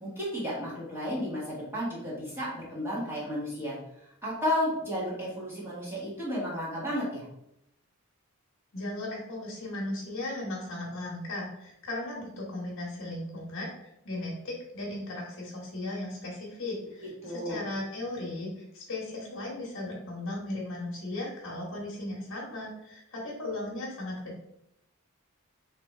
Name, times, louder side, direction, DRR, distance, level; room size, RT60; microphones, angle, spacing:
voice 1, 0.0-7.2 17.2-17.6, equal, 10° right, -7 dB, 1.7 m, -33 dB
voice 2, 8.7-24.4, left 1 dB, 60° left, -3 dB, 1.2 m, -37 dB
3.4 x 3.2 x 4.4 m, 0.78 s
head